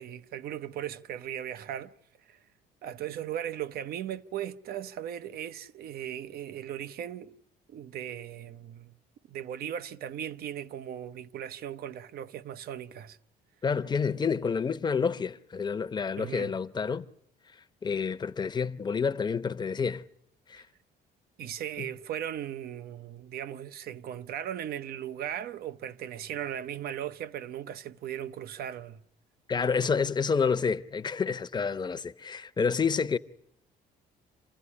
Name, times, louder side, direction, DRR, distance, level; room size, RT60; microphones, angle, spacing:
voice 1, 0.0-1.9 2.3-2.4 2.8-7.3 7.7-9.0 9.3-13.2 16.2-16.5 20.6-20.7 21.4-29.0, right 10 dB, 65° right, 0.9 m, -37 dB
voice 2, 13.6-17.1 17.8-20.0 20.5-20.6 21.8-21.9 29.5-33.2, left 5 dB, 25° left, 0.9 m, -29 dB
27.0 x 16.0 x 9.9 m
cardioid pair, 110°, 17 cm